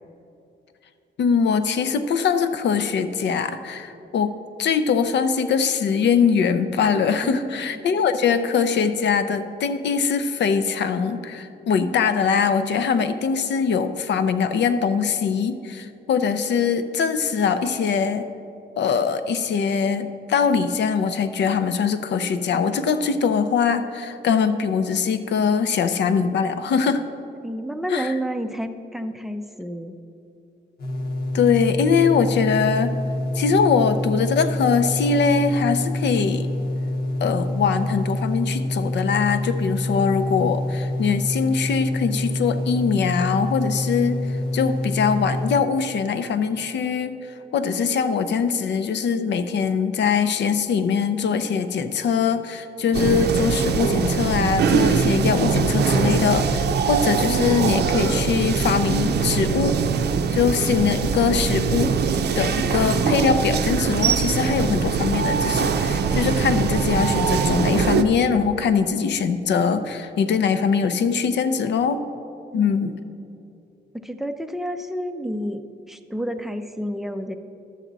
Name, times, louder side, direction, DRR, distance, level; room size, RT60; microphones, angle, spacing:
voice 1, 1.2-4.3 4.6-18.3 18.8-27.0 27.9-28.1 31.3-33.0 33.3-36.5 37.2-44.2 44.5-47.2 47.5-59.8 60.3-62.0 62.4-72.0 72.5-73.0, left 6 dB, 75° left, 10 dB, 0.6 m, -22 dB
voice 2, 7.2-7.9 27.4-30.0 72.5-72.7 73.9-75.6 75.9-77.4, equal, ahead, 7 dB, 0.4 m, -30 dB
sound 1, 30.8-45.6, left 1 dB, 55° left, 0.9 m, -26 dB
sound 2, 52.9-68.0, right 5 dB, 65° right, 0.5 m, -22 dB
12.0 x 7.4 x 4.0 m, 2.6 s
wide cardioid pair, 155°, 18 cm